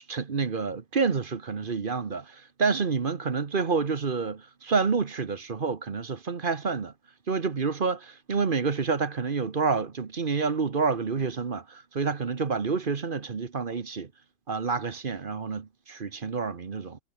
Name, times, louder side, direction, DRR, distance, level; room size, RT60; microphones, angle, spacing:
voice 1, 0.0-6.9 7.3-14.1 14.5-17.0, right 5 dB, 35° right, 1.2 m, -28 dB
omnidirectional pair, 1.6 m